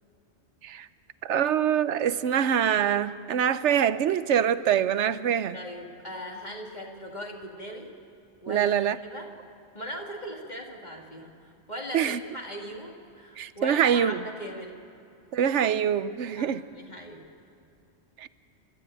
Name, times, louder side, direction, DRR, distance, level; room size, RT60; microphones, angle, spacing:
voice 1, 1.2-5.6 8.5-9.0 11.9-12.2 13.4-14.2 15.3-16.6 18.2-18.3, right 9 dB, 85° right, 1.1 m, -24 dB
voice 2, 5.5-7.9 8.4-8.8 9.0-9.3 9.7-14.8 16.4-17.3, equal, 40° left, 2.4 m, -39 dB
29.5 x 12.5 x 9.0 m
omnidirectional pair, 1.2 m